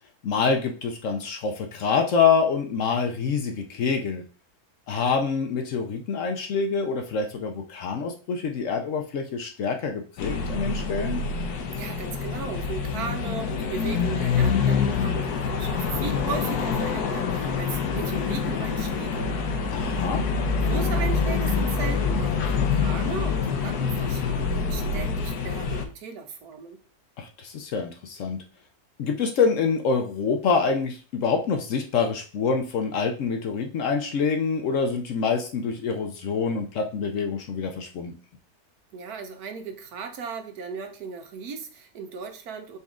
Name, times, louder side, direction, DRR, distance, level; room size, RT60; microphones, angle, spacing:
voice 1, 0.2-4.2 4.9-11.2 19.7-20.3 27.2-28.4 29.0-38.1, left 5 dB, 65° left, 4 dB, 0.9 m, -26 dB
sound 1, 10.2-25.9, left 5 dB, 85° left, 1.2 m, -26 dB
voice 2, 11.8-19.3 20.1-20.2 20.7-26.8 38.9-42.8, right 5 dB, 75° right, 6 dB, 1.3 m, -36 dB
4.1 x 3.6 x 3.6 m, 0.38 s
omnidirectional pair, 1.7 m